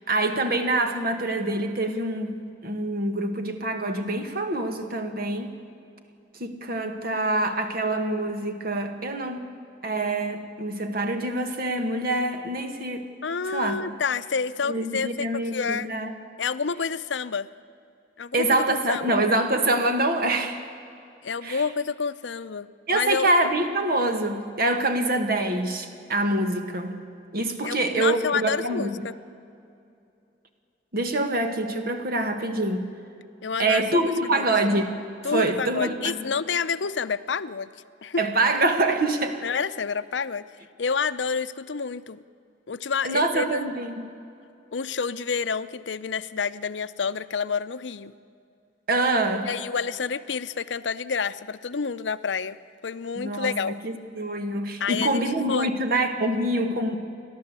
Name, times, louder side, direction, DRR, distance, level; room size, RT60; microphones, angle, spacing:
voice 1, 0.1-5.5 6.4-9.5 9.8-13.1 13.5-13.8 14.6-16.1 18.3-20.6 21.4-21.6 22.9-27.0 27.3-29.0 30.9-32.9 33.6-35.0 35.3-36.2 38.2-39.4 43.0-44.1 48.9-49.5 53.2-53.6 53.8-57.0, right 2 dB, 55° right, 6 dB, 1.9 m, -25 dB
voice 2, 13.2-15.9 16.4-17.5 18.2-19.2 21.2-23.3 27.6-29.1 33.4-34.5 35.2-37.7 38.0-38.2 39.4-40.4 40.8-42.2 42.7-43.7 44.7-48.1 49.5-52.6 52.8-53.8 54.8-55.2 55.5-55.7, left 5 dB, 75° left, 14 dB, 0.6 m, -29 dB
30.0 x 12.0 x 8.2 m, 2.5 s
head